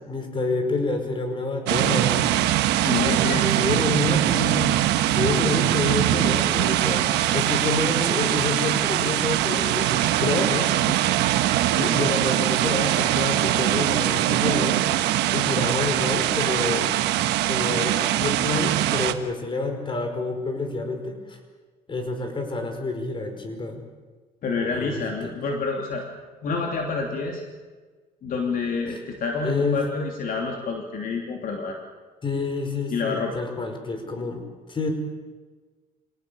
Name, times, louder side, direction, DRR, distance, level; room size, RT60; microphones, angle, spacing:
voice 1, 0.0-2.4 3.6-4.8 5.1-9.9 10.2-11.0 11.8-14.8 15.3-17.0 17.4-21.4 21.9-23.8 24.7-25.3 29.4-29.9 32.2-34.4 34.7-34.9, left 3 dB, 30° left, 5 dB, 5.2 m, -28 dB
sound 1, 1.7-19.1, right 14 dB, 90° right, 1.3 m, -22 dB
voice 2, 2.8-3.8 4.1-4.2 11.6-12.2 24.4-26.0 26.4-27.4 28.2-31.8 32.9-33.4, left 4 dB, 55° left, 2 dB, 3.0 m, -28 dB
Guitar, 6.6-15.4, right 4 dB, 20° right, 3.7 m, -45 dB
26.5 x 18.5 x 7.0 m, 1.3 s
cardioid pair, 110°, 17 cm